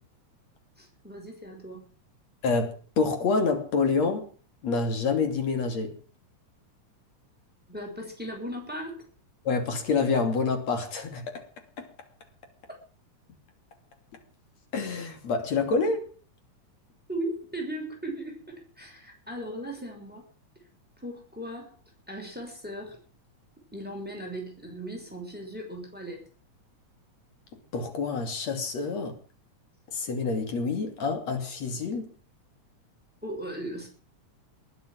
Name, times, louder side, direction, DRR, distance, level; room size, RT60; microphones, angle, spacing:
voice 1, 0.8-1.8 7.7-9.0 17.1-20.3 21.0-21.8 22.1-23.0 23.7-26.2 33.2-33.9, right 1 dB, 5° right, 6.2 m, -37 dB
voice 2, 2.4-4.3 4.6-6.0 9.5-11.4 11.8-11.9 14.7-16.1 27.7-29.2 29.9-32.1, left 4 dB, 60° left, 4.0 m, -27 dB
20.5 x 9.3 x 7.6 m
omnidirectional pair, 3.4 m